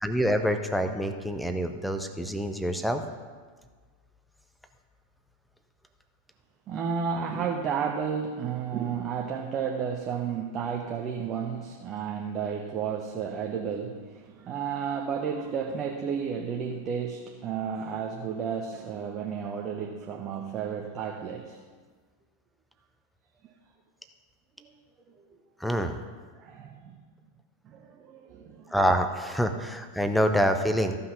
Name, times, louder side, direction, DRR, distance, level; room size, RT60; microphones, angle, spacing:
voice 1, 0.0-3.0 25.6-25.9 28.7-31.0, equal, ahead, 7 dB, 0.7 m, -26 dB
voice 2, 6.7-21.6 24.6-24.7 26.4-27.0 27.7-28.7, right 7 dB, 30° right, 2 dB, 0.9 m, -32 dB
14.5 x 5.6 x 5.5 m, 1.5 s
figure-of-eight pair, 90°, 0 cm